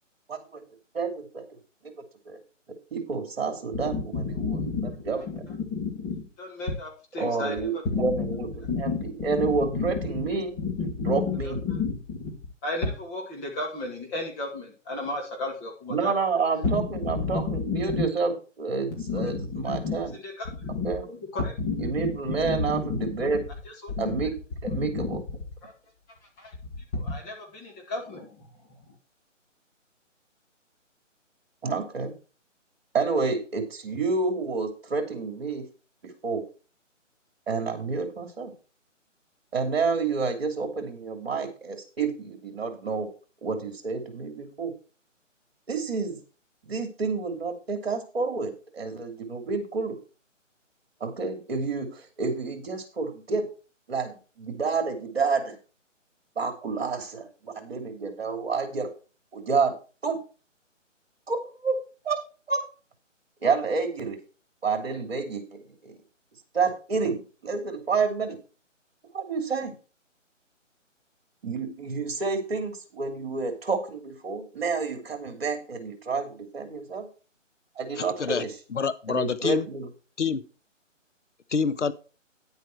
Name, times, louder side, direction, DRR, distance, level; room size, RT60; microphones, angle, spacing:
voice 1, 0.3-0.6 0.9-1.4 1.8-1.9 2.3-2.4 2.9-4.1 4.5-4.6 5.0-5.3 7.2-8.5 8.8-10.6 11.1-11.6 15.9-18.3 18.6-20.1 20.8-21.0 21.8-23.4 24.0-24.3 24.6-25.2 31.6-32.1 32.9-35.7 36.0-36.4 37.5-38.5 39.5-43.1 43.4-44.7 45.7-46.2 46.6-50.0 51.0-53.5 53.9-55.6 56.4-58.9 59.3-59.7 60.0-60.2 61.3-61.8 62.0-62.2 62.5-62.6 63.4-64.2 64.6-65.9 66.5-68.4 69.1-69.7 71.4-77.1 77.8-78.5 79.1-79.9, right 4 dB, 50° right, 6 dB, 3.0 m, -29 dB
voice 2, 3.7-4.9 5.3-5.4 5.7-7.6 7.9-8.2 8.6-10.2 10.6-12.3 12.6-16.1 16.6-18.1 18.9-23.1 23.7-24.3 24.7-25.2 25.6-25.7 26.4-28.5, left 4 dB, 15° left, 0 dB, 2.1 m, -31 dB
voice 3, 77.9-78.4 78.7-79.7 80.2-80.5 81.5-81.9, left 6 dB, 65° left, 14 dB, 1.0 m, -27 dB
10.5 x 8.1 x 4.6 m, 0.35 s
figure-of-eight pair, 160°, 38 cm